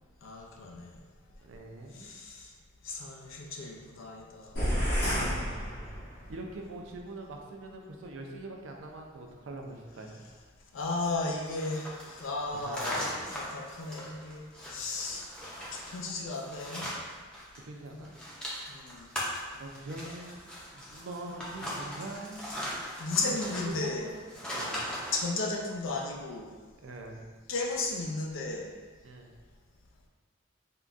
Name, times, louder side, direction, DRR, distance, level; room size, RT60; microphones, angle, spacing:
voice 1, 0.2-0.9 1.9-2.5 2.8-5.7 10.7-14.4 14.7-15.3 15.7-16.9 17.9-18.0 18.7-19.1 23.0-24.1 25.1-26.5 27.5-28.7, left 3 dB, 80° left, 0 dB, 0.5 m, -35 dB
voice 2, 1.4-2.1 6.3-10.3 12.6-13.5 17.6-18.1 19.5-24.2 24.5-24.9 26.8-27.3 29.0-29.3, right 2 dB, 75° right, 2 dB, 0.4 m, -43 dB
sound 1, 4.6-6.4, equal, 55° left, 1.0 m, -30 dB
sound 2, 11.5-17.6 17.9-25.3, equal, 5° left, 0.5 m, -39 dB
3.6 x 2.2 x 2.4 m, 1.4 s
head